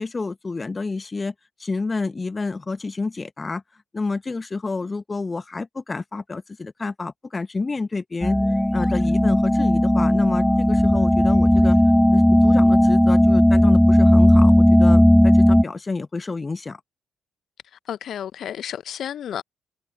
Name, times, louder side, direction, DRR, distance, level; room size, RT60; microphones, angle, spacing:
voice 1, 0.0-1.3 1.6-3.6 3.9-8.4 8.7-11.8 12.1-16.8, left 3 dB, 30° left, 1.2 m, -29 dB
sound 1, 8.2-15.6, left 1 dB, 5° left, 0.4 m, -16 dB
voice 2, 17.9-19.4, left 9 dB, 60° left, 0.7 m, -31 dB
figure-of-eight pair, 45°, 0 cm